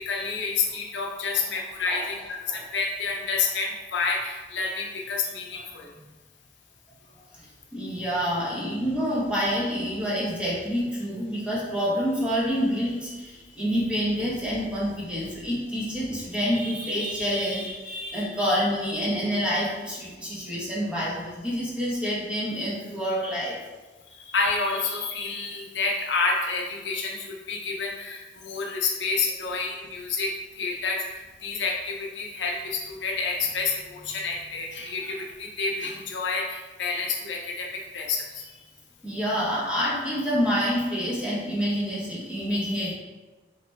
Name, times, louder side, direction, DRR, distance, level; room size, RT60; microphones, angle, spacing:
voice 1, 0.0-5.9 24.3-38.4, left 4 dB, 80° left, 0 dB, 0.7 m, -29 dB
voice 2, 7.7-23.6 29.4-29.5 39.0-42.9, equal, 5° right, -7 dB, 1.2 m, -27 dB
4.1 x 3.1 x 3.4 m, 1.2 s
head